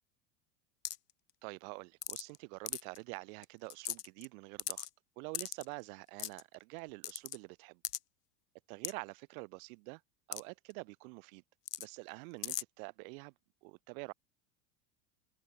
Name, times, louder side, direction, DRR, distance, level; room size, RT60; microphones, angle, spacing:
sound 1, 0.9-1.1 2.0-2.4 2.7-3.0 3.4-3.5 3.7-4.3 4.6-4.9 5.3-5.7 6.2-6.4 7.0-7.4 7.8-8.0 8.8-8.9 10.3-10.4 10.7-10.8 11.7-11.9 12.4-12.6, left 12 dB, 80° left, 6.2 m, -38 dB
voice 1, 1.4-4.9 5.2-7.8 8.7-10.0 10.3-11.4 11.8-13.3 13.6-14.1, right 31 dB, 65° right, 4.8 m, -47 dB
hypercardioid pair, 95°, 46 cm